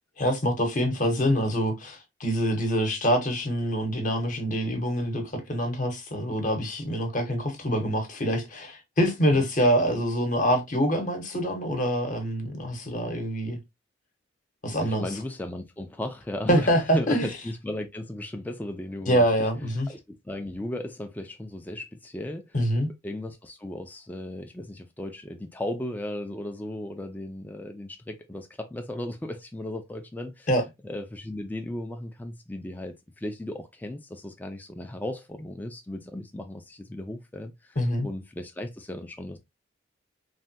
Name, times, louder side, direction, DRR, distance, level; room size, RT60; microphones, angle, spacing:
voice 1, 0.2-13.6 14.6-15.1 16.5-17.3 19.1-19.9 22.5-22.9 30.5-30.6 37.8-38.1, equal, 40° left, 0.8 m, -25 dB
voice 2, 14.8-19.5 19.9-22.6 22.8-30.5 30.8-37.8 38.0-39.4, left 1 dB, 10° left, 0.3 m, -36 dB
3.2 x 2.2 x 2.6 m
head